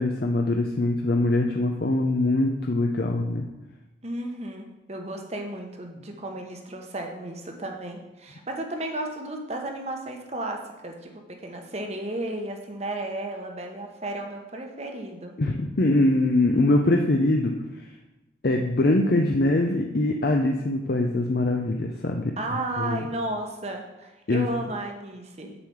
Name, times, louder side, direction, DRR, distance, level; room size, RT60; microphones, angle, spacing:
voice 1, 0.0-3.4 15.4-17.5 18.4-22.3 22.8-23.0 24.3-24.5, left 2 dB, 50° left, 2 dB, 0.6 m, -23 dB
voice 2, 4.0-15.3 22.4-25.5, right 1 dB, 35° right, 3 dB, 1.1 m, -33 dB
7.0 x 4.9 x 7.1 m, 1.0 s
head